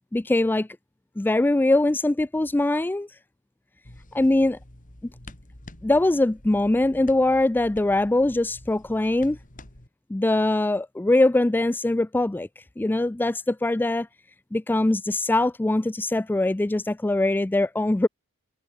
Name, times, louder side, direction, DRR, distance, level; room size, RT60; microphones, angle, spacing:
voice 1, 0.1-0.7 1.2-3.1 4.1-4.6 5.8-9.4 10.1-12.5 12.8-14.1 14.5-18.1, left 2 dB, 10° left, 0.3 m, -22 dB
sound 1, 3.8-9.9, left 1 dB, 40° left, 3.0 m, -47 dB
head